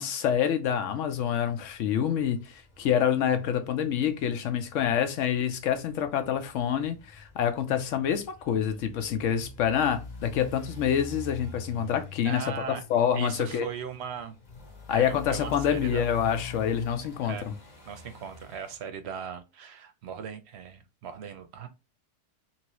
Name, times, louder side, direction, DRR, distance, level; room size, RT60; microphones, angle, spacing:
voice 1, 0.0-12.4 12.9-13.7 14.9-17.5, left 9 dB, 80° left, 1.0 m, -27 dB
sound 1, 0.9-18.8, left 3 dB, 40° left, 0.9 m, -45 dB
voice 2, 12.2-12.8 13.1-14.3 14.9-16.0 17.2-17.5 17.9-21.7, right 7 dB, 65° right, 0.8 m, -38 dB
2.9 x 2.7 x 2.9 m
omnidirectional pair, 1.3 m